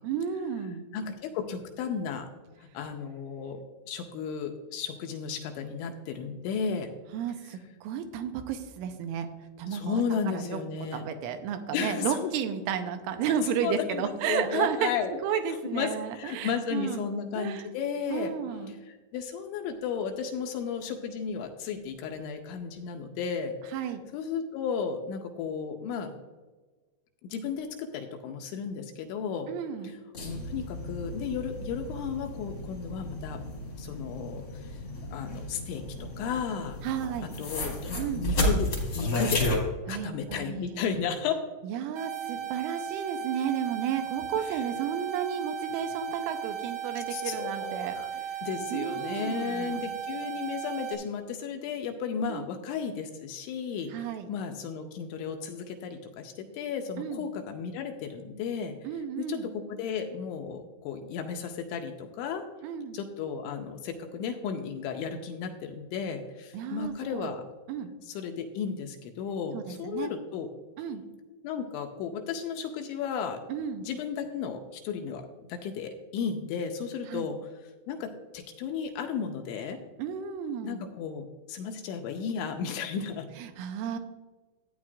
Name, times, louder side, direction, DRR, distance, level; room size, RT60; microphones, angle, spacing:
voice 1, 0.0-0.8 7.1-9.3 9.6-10.6 10.9-14.9 15.2-17.1 17.4-17.7 18.1-18.7 23.7-24.0 29.5-29.9 36.8-37.3 38.0-38.3 39.9-40.8 41.6-48.0 48.3-48.4 48.7-49.8 52.3-52.5 53.9-54.3 57.0-57.2 58.8-59.5 62.6-63.0 66.5-67.3 67.7-67.9 69.5-70.1 70.8-71.0 73.5-73.8 77.1-77.3 80.0-80.8 83.4-84.0, right 8 dB, 85° right, 7 dB, 3.2 m, -32 dB
voice 2, 0.9-2.3 2.6-6.9 9.7-11.0 11.7-12.3 13.6-15.1 15.7-18.3 18.9-23.6 24.1-26.1 27.2-29.5 29.8-30.0 30.2-33.4 33.8-34.8 35.1-36.8 37.2-38.7 38.9-39.6 39.9-41.4 44.5-44.6 47.1-48.1 48.4-58.8 59.2-62.4 62.9-67.4 68.0-70.5 71.4-73.4 73.9-75.2 75.5-79.8 80.6-83.3, left 6 dB, 80° left, 4 dB, 2.8 m, -34 dB
sound 1, 30.1-39.6, left 1 dB, 50° left, 1.3 m, -33 dB
sound 2, 41.9-50.9, right 9 dB, 60° right, 2.0 m, -36 dB
13.5 x 9.3 x 2.4 m, 1.3 s
omnidirectional pair, 5.7 m